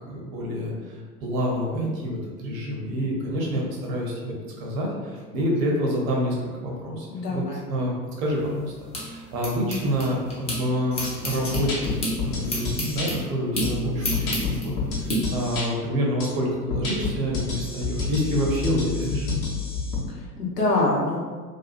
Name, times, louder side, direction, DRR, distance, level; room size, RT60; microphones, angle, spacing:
voice 1, 0.1-0.7 1.2-6.3 6.6-7.4 7.7-7.9 8.2-11.9 12.2-19.4, equal, 60° right, -2 dB, 0.8 m, -27 dB
voice 2, 7.1-7.6 20.1-21.2, left 2 dB, 85° left, -4 dB, 0.8 m, -25 dB
sound 1, 8.2-10.6 10.9-15.2, equal, 15° left, 0.6 m, -31 dB
sound 2, 11.0-11.1 11.5-13.1 13.6-15.7 16.2-16.3 16.7-20.0, left 5 dB, 40° left, 0.8 m, -29 dB
2.7 x 2.3 x 2.4 m, 1.5 s
figure-of-eight pair, 80°, 47 cm